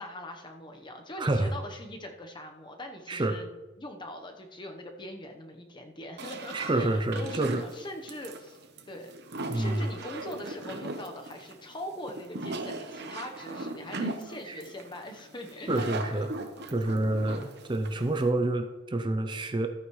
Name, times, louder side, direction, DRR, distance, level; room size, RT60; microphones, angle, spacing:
voice 1, 0.0-3.5 3.8-8.6 8.9-9.2 9.5-16.3 17.4-17.5, left 1 dB, 25° left, 4 dB, 0.9 m, -42 dB
voice 2, 1.2-1.5 3.1-3.4 6.5-7.6 9.5-9.9 14.5-14.6 15.7-16.3 16.7-19.7, right 2 dB, 25° right, 7 dB, 0.5 m, -28 dB
sound 1, 6.2-18.3, right 2 dB, 60° right, 0.9 m, -38 dB
14.0 x 9.1 x 3.1 m, 1.2 s
head